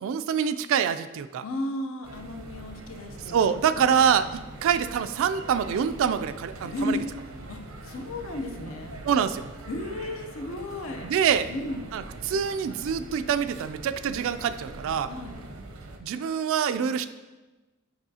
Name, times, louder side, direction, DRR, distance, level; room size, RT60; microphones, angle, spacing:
voice 1, 0.0-1.4 3.3-7.0 9.0-9.5 11.0-11.5 11.9-15.1 16.0-17.1, right 7 dB, 65° right, 12 dB, 0.3 m, -25 dB
voice 2, 1.4-3.4 3.7-4.4 6.6-7.0 7.5-9.0 9.7-11.1 11.5-11.9 15.1-15.4, left 1 dB, 70° left, 4 dB, 0.7 m, -34 dB
sound 1, 2.0-16.0, right 2 dB, 90° right, 0.7 m, -43 dB
7.8 x 5.5 x 2.7 m, 1.2 s
head